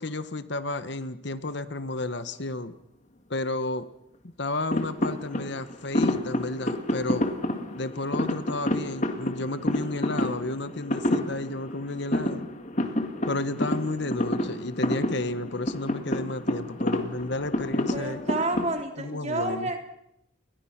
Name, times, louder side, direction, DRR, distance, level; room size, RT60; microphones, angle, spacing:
voice 1, 0.0-2.7 3.3-3.9 4.4-7.2 7.7-12.5 13.3-18.2 19.0-19.7, left 2 dB, 55° left, 12 dB, 1.2 m, -32 dB
sound 1, 4.7-18.8, left 1 dB, 35° left, 2.1 m, -29 dB
voice 2, 17.9-19.9, right 2 dB, 30° right, 3 dB, 3.7 m, -30 dB
29.5 x 23.0 x 6.0 m, 0.79 s
head